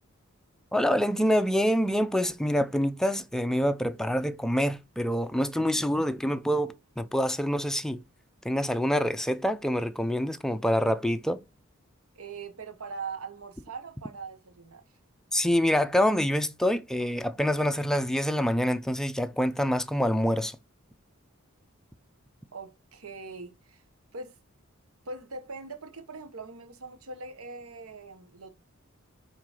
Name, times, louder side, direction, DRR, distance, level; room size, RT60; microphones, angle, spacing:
voice 1, 0.7-8.0 8.4-11.4 15.3-20.6, equal, ahead, 0.5 m, -26 dB
voice 2, 12.1-14.8 22.5-23.8 24.1-24.4 25.0-28.5, right 4 dB, 85° right, 1.0 m, -41 dB
8.4 x 3.8 x 4.8 m
head